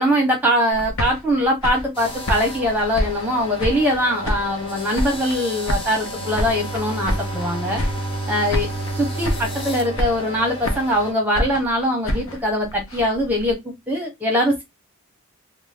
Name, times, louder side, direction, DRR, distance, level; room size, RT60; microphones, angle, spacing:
voice 1, 0.0-7.8 8.3-8.7 9.0-13.6 13.9-14.6, equal, 10° right, 0.8 m, -22 dB
sound 1, 0.7-4.0 4.2-5.4 5.7-7.5 7.7-8.2 8.5-9.0 9.2-9.7 10.0-11.0 11.3-13.5, left 1 dB, 65° left, 0.7 m, -27 dB
sound 2, 1.9-11.1, left 1 dB, 25° left, 0.8 m, -34 dB
Bowed string instrument, 6.1-11.1, right 2 dB, 60° right, 0.4 m, -31 dB
2.6 x 2.1 x 3.3 m
head